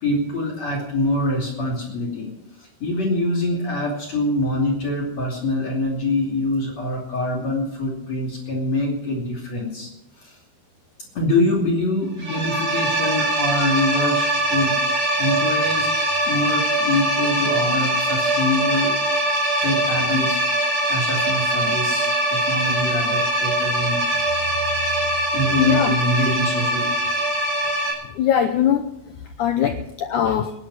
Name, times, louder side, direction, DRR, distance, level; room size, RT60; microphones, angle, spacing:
voice 1, 0.0-2.3 2.6-9.9 10.2-10.4 11.1-14.8 15.2-15.9 16.3-18.9 19.6-20.4 20.9-24.0 25.3-26.9, left 1 dB, 45° left, -2 dB, 3.7 m, -24 dB
sound 1, 12.2-27.9, right 1 dB, 30° right, 5.3 m, -22 dB
voice 2, 25.6-25.9 28.2-28.8 29.4-30.5, left 9 dB, 80° left, 7 dB, 1.8 m, -21 dB
27.0 x 11.0 x 4.8 m, 0.84 s
omnidirectional pair, 4.6 m